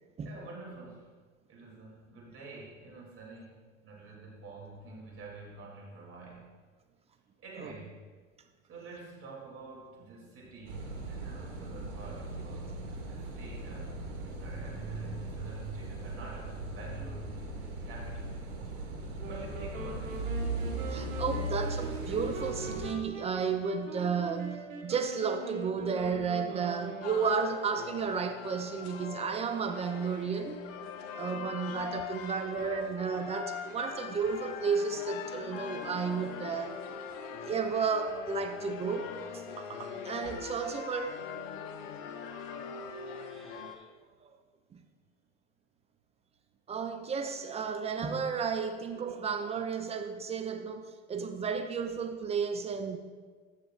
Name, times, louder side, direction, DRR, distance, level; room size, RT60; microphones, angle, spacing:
voice 1, 0.2-1.1 1.5-6.5 7.4-8.0 8.7-18.3 19.3-20.5, right 3 dB, 35° right, 2.8 m, -47 dB
Car passing by / Idling / Accelerating revving vroom, 10.6-22.9, right 1 dB, 55° right, 2.2 m, -38 dB
sound 1, 19.2-27.6, right 3 dB, 85° right, 1.3 m, -42 dB
voice 2, 20.9-30.6 31.1-36.8 37.4-41.2 43.0-43.7 44.2-44.3 44.7-44.8 46.7-53.0, right 5 dB, 15° right, 0.4 m, -33 dB
sound 2, 27.0-43.8, left 6 dB, 50° left, 0.9 m, -42 dB
14.5 x 6.5 x 2.4 m
hypercardioid pair, 90°, 39 cm